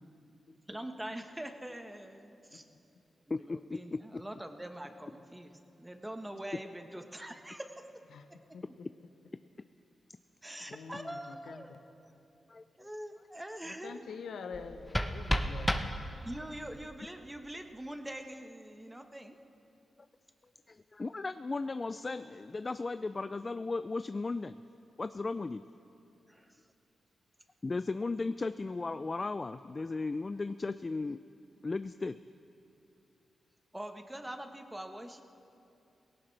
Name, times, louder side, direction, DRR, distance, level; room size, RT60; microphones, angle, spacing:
voice 1, 0.7-2.7 3.3-5.5 5.8-7.8 10.4-11.7 12.8-14.0 16.2-19.4 26.3-26.6 33.7-35.2, right 1 dB, 10° right, 6 dB, 1.2 m, -44 dB
voice 2, 3.3-4.2 12.5-12.9 20.7-24.6 25.0-25.6 27.6-31.2 31.6-32.2, left 3 dB, 35° left, 12 dB, 0.3 m, -36 dB
voice 3, 8.1-8.9 10.7-11.8 13.6-15.7, left 5 dB, 85° left, 7 dB, 0.8 m, -46 dB
sound 1, 14.5-16.5, equal, 10° left, 0.9 m, -33 dB
18.0 x 17.0 x 3.3 m, 2.7 s
cardioid pair, 60°, 0 cm